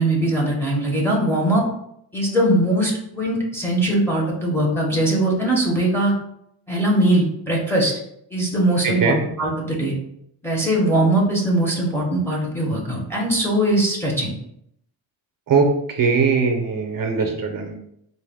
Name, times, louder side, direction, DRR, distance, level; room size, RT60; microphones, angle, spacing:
voice 1, 0.0-1.6 2.1-6.1 6.7-7.9 8.3-9.9 10.4-14.3 17.2-17.3, right 1 dB, 5° left, -3 dB, 0.7 m, -21 dB
voice 2, 8.8-9.2 15.5-17.7, right 5 dB, 45° right, 3 dB, 0.6 m, -20 dB
4.0 x 2.2 x 3.4 m, 0.74 s
wide cardioid pair, 145°, 45 cm